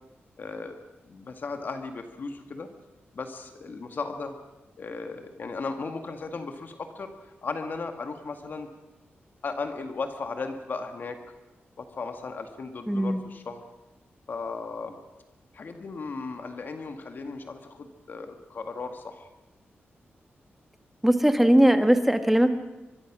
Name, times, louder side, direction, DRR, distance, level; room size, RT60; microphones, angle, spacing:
voice 1, 0.4-0.8 1.0-2.7 3.1-4.4 4.8-8.7 9.4-11.2 11.8-13.6 14.3-15.0 15.5-19.3, left 4 dB, 50° left, 6 dB, 2.0 m, -36 dB
voice 2, 12.9-13.2 21.0-22.5, right 1 dB, 5° right, 8 dB, 1.5 m, -20 dB
24.5 x 23.0 x 6.2 m, 1.0 s
wide cardioid pair, 155°, 4 cm